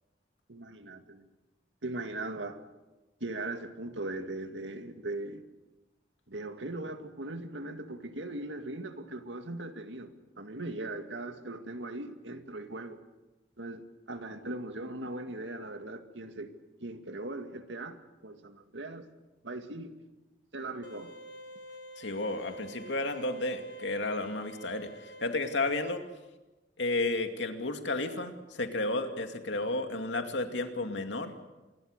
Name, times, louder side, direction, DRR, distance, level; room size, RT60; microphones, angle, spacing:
voice 1, 0.5-1.3 1.8-2.6 3.2-5.4 6.3-13.0 13.6-16.5 16.8-19.0 19.4-19.9 20.5-21.1, right 2 dB, 90° right, 7 dB, 2.1 m, -39 dB
sound 1, 20.8-25.9, right 1 dB, 60° left, 1.5 m, -47 dB
voice 2, 22.0-26.0 26.8-31.3, left 2 dB, 85° left, 6 dB, 2.4 m, -32 dB
27.0 x 21.5 x 6.7 m, 1.1 s
head